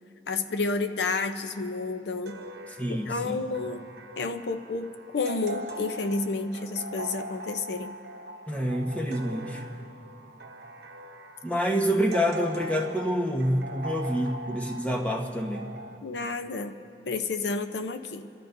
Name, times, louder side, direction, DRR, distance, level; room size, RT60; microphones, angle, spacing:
voice 1, 0.3-2.4 2.9-3.9 4.2-4.9 5.1-7.9 16.0-16.8 17.1-18.3, left 3 dB, 75° left, 7 dB, 0.6 m, -30 dB
sound 1, 2.3-16.0, right 1 dB, 65° right, 0.9 m, -41 dB
voice 2, 2.8-3.4 8.5-9.6 11.4-15.7, equal, 10° left, 1 dB, 1.1 m, -27 dB
28.5 x 13.0 x 2.6 m, 2.8 s
head